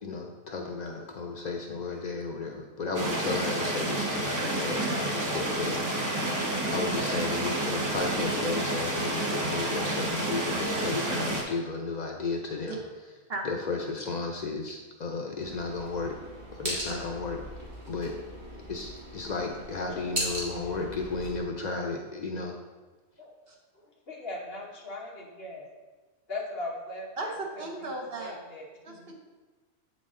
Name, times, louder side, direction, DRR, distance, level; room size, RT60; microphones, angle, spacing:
voice 1, 0.0-6.2 6.7-12.8 13.4-16.2 16.5-17.4 17.9-18.2 18.5-22.6, left 3 dB, 85° left, 2 dB, 0.4 m, -34 dB
sound 1, 2.9-11.4, right 1 dB, 20° right, 0.6 m, -29 dB
sound 2, 15.4-21.4, equal, 35° right, 1.6 m, -38 dB
voice 2, 23.7-25.7 26.3-27.6 28.2-29.1, left 2 dB, 45° left, -2 dB, 1.3 m, -40 dB
voice 3, 27.6-28.4 28.8-29.2, right 2 dB, 50° right, 0 dB, 0.9 m, -36 dB
8.3 x 4.1 x 3.7 m, 1.3 s
omnidirectional pair, 1.5 m